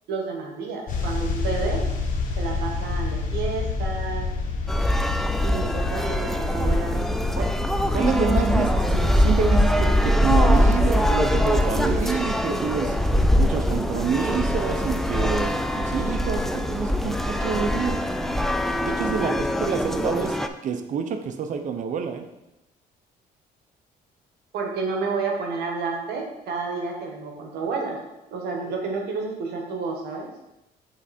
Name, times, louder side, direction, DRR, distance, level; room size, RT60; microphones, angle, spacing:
voice 1, 0.1-1.9 2.4-4.3 5.4-7.2 24.5-28.0 28.3-30.3, right 4 dB, 75° right, 1 dB, 1.4 m, -30 dB
sound 1, 0.9-20.0, left 4 dB, 50° left, 1.1 m, -31 dB
sound 2, 4.7-20.5, equal, ahead, 0.3 m, -22 dB
voice 2, 7.9-12.9 13.4-18.0 18.8-22.3, right 6 dB, 50° right, 7 dB, 0.7 m, -27 dB
7.8 x 3.4 x 4.2 m, 0.91 s
cardioid pair, 110°, 17 cm